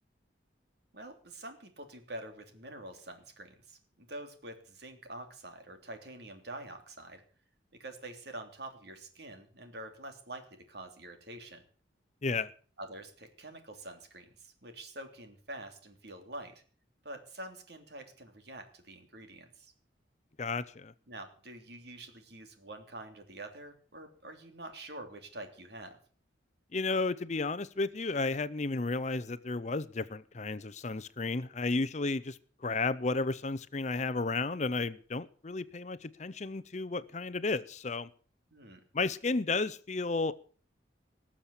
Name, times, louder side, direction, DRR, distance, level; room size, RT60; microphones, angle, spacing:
voice 1, 0.9-7.2 7.8-11.6 12.8-16.5 17.0-19.7 21.1-26.0 38.5-38.8, right 1 dB, 55° right, 3.1 m, -46 dB
voice 2, 20.4-20.9 26.7-38.1 38.9-40.4, left 3 dB, 35° left, 0.6 m, -33 dB
19.5 x 7.3 x 8.3 m
head